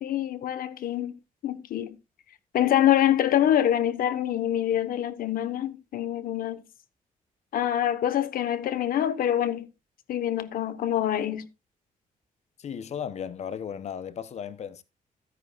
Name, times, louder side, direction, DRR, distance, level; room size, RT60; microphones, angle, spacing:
voice 1, 0.0-1.2 1.4-2.0 2.5-6.6 7.5-9.7 10.1-11.5, left 11 dB, 85° left, 1.1 m, -25 dB
voice 2, 12.6-14.8, left 8 dB, 50° left, 0.8 m, -35 dB
13.5 x 9.5 x 2.4 m
cardioid pair, 150°, 15 cm